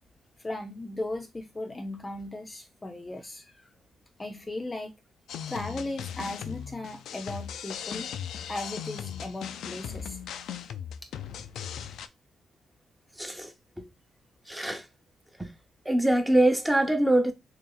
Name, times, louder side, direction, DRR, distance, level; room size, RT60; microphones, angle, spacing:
voice 1, 0.4-3.6 4.2-4.9 5.5-8.1 8.5-10.2, left 2 dB, 25° left, 0.6 m, -37 dB
sound 1, 5.3-12.1, left 9 dB, 80° left, 0.3 m, -38 dB
voice 2, 13.2-13.5 13.8-13.9 14.5-14.8 15.4-15.5 15.8-17.3, right 1 dB, 5° right, 0.9 m, -23 dB
3.0 x 2.7 x 3.9 m
cardioid pair, 70°, 0 cm